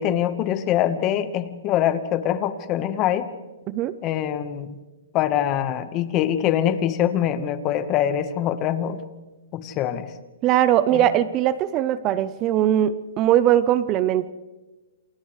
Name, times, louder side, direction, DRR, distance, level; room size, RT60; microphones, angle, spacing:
voice 1, 0.0-3.3 4.0-4.7 5.1-9.0 9.5-10.1 10.9-11.0, left 10 dB, 25° left, 11 dB, 1.2 m, -24 dB
voice 2, 10.4-14.3, right 11 dB, 25° right, 15 dB, 0.6 m, -20 dB
29.0 x 28.0 x 3.3 m, 1.2 s
hypercardioid pair, 155°, 0 cm